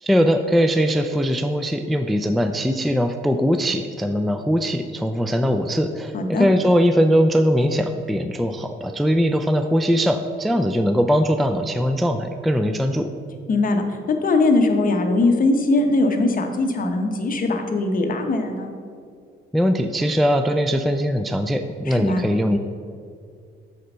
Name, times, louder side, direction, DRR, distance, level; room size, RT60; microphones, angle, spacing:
voice 1, 0.0-13.1 19.5-22.6, equal, ahead, 7 dB, 0.3 m, -20 dB
voice 2, 6.1-6.5 13.5-18.7 21.9-22.2, left 2 dB, 45° left, 4 dB, 0.9 m, -21 dB
6.6 x 4.4 x 5.4 m, 2.2 s
cardioid pair, 90°, 20 cm